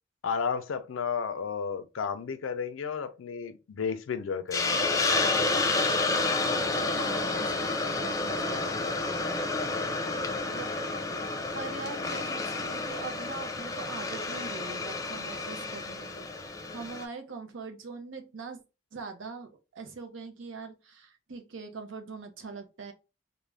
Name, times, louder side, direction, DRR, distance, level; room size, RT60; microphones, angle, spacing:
voice 1, 0.2-5.1, left 6 dB, 90° left, 0.4 m, -33 dB
Hiss, 4.5-17.0, left 3 dB, 15° left, 0.3 m, -30 dB
voice 2, 6.7-8.7 9.0-9.7 10.5-10.7 11.5-18.6 18.9-22.9, right 4 dB, 80° right, 0.6 m, -42 dB
2.4 x 2.1 x 3.2 m
head